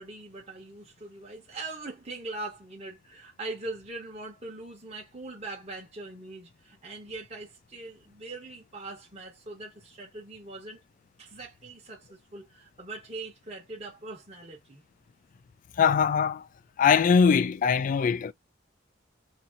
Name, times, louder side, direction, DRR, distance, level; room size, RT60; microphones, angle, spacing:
voice 1, 0.0-10.8 11.2-14.8, right 2 dB, 35° right, 1.1 m, -41 dB
voice 2, 15.8-16.5 16.8-18.3, left 6 dB, 45° left, 0.3 m, -22 dB
2.8 x 2.7 x 2.5 m
head